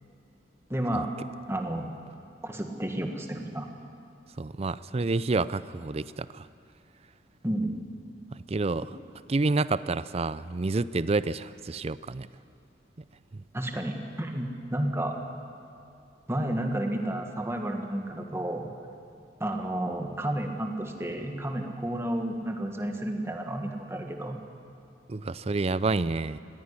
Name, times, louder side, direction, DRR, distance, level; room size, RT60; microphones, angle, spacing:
voice 1, 0.7-1.1 1.5-1.9 2.4-3.7 7.4-7.8 13.5-15.2 16.3-18.7 19.4-24.5, right 1 dB, 15° right, 3 dB, 1.7 m, -31 dB
voice 2, 4.4-6.5 8.3-8.9 9.3-12.3 13.3-13.4 25.1-26.4, right 3 dB, 35° right, 16 dB, 0.5 m, -29 dB
20.0 x 16.5 x 9.9 m, 2.5 s
head